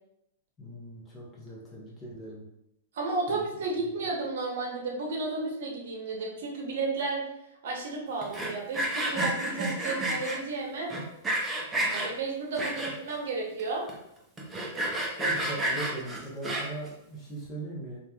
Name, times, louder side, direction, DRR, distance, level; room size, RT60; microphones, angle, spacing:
voice 1, 0.6-2.5 3.3-3.4 15.1-18.0, right 2 dB, 20° left, -5 dB, 0.9 m, -39 dB
voice 2, 2.9-7.2 7.6-10.9 11.9-13.8, right 3 dB, 70° right, 0 dB, 0.7 m, -33 dB
Sawing, 8.2-10.4 10.9-12.1 12.6-13.2 13.6-13.7 13.9-14.0 14.4-16.9, right 1 dB, 10° right, 0.6 m, -30 dB
2.9 x 2.5 x 2.3 m, 0.82 s
hypercardioid pair, 145°, 0 cm